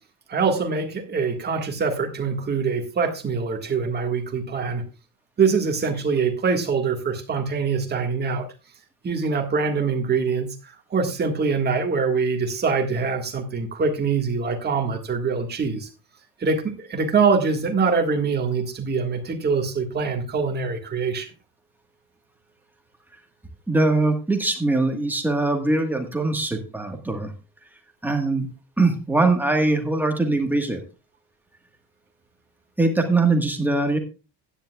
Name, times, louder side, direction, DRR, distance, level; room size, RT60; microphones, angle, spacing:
voice 1, 0.3-4.8 5.4-8.4 9.0-15.9 16.4-21.3, right 5 dB, 20° right, 3 dB, 1.7 m, -24 dB
voice 2, 23.7-27.3 28.0-28.5 28.8-30.8 32.8-34.0, right 2 dB, 5° right, 4 dB, 1.4 m, -22 dB
15.5 x 10.5 x 2.3 m, 0.30 s
cardioid pair, 180°, 45 cm